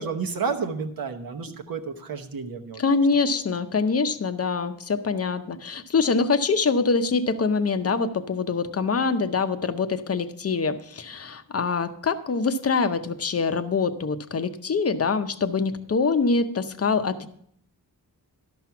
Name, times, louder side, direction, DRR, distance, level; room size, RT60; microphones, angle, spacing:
voice 1, 0.0-3.0, right 5 dB, 65° right, 5 dB, 0.9 m, -31 dB
voice 2, 2.8-17.3, left 4 dB, 40° left, 10 dB, 0.6 m, -24 dB
12.5 x 6.0 x 5.7 m, 0.68 s
wide cardioid pair, 145°, 38 cm